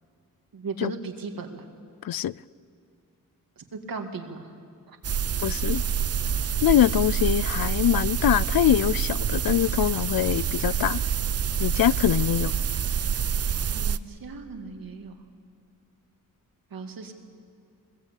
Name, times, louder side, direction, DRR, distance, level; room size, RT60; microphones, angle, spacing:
voice 1, 0.5-1.7 3.6-4.5 4.9-5.0 13.7-15.1 16.7-17.1, right 4 dB, 85° right, 2.3 m, -37 dB
sound 1, 5.0-14.0, right 8 dB, 45° right, 0.5 m, -26 dB
voice 2, 5.4-5.8 6.6-11.0 11.6-12.5, left 12 dB, 85° left, 0.5 m, -23 dB
22.0 x 21.5 x 8.4 m
wide cardioid pair, 110°, 34 cm